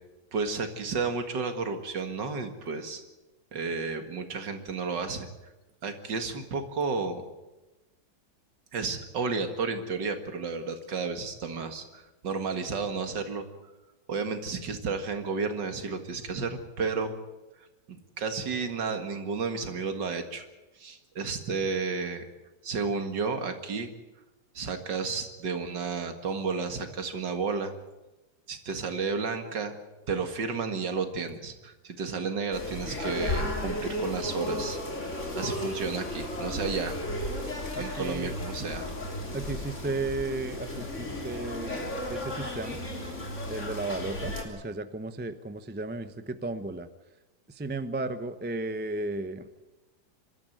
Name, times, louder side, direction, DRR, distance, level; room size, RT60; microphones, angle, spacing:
voice 1, 0.3-3.0 3.5-5.3 5.8-7.2 8.7-13.5 14.1-17.1 17.9-20.5 20.8-22.3 22.6-23.9 24.5-27.7 28.5-29.7 30.1-34.8 35.4-37.0 37.8-38.9, right 4 dB, 65° right, 7 dB, 2.5 m, -32 dB
sound 1, 32.5-44.4, left 1 dB, 40° left, 3.6 m, -34 dB
voice 2, 37.7-38.4 39.3-42.8 43.5-46.9 47.5-49.5, right 2 dB, 10° right, 11 dB, 0.5 m, -34 dB
24.5 x 13.5 x 9.2 m, 1.1 s
omnidirectional pair, 2.0 m